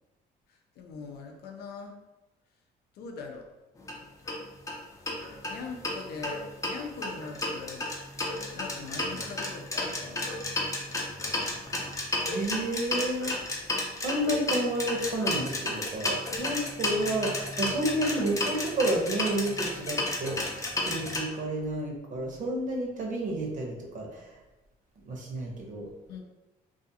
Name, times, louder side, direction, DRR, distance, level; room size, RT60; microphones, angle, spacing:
voice 1, 0.5-2.0 2.9-3.5 5.5-7.9 8.5-10.4 26.1-26.2, left 4 dB, 75° left, 3 dB, 0.5 m, -41 dB
sound 1, 3.8-3.9 4.3-4.4 4.7-4.8 5.1-6.0 6.2-21.2, left 2 dB, 20° left, 0.5 m, -32 dB
voice 2, 12.3-13.4 14.0-20.4 20.8-24.3 25.1-25.9, right 1 dB, 50° right, 0 dB, 0.7 m, -30 dB
2.4 x 2.4 x 2.7 m, 1.0 s
cardioid pair, 110°, 17 cm